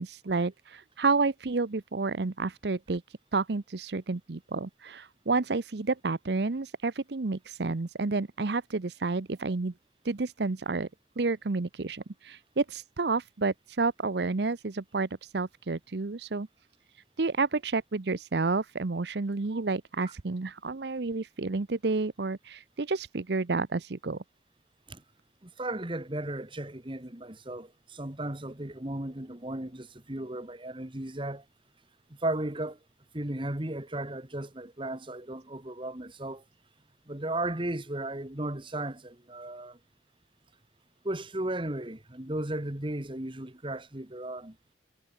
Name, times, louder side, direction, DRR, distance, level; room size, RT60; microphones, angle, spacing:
voice 1, 0.0-3.0 3.3-9.7 10.0-10.9 11.2-16.5 17.2-24.2, right 3 dB, 60° right, 0.7 m, -30 dB
voice 2, 25.4-31.4 32.1-32.8 33.1-36.4 37.1-39.8 41.0-44.6, right 1 dB, 25° right, 1.7 m, -35 dB
head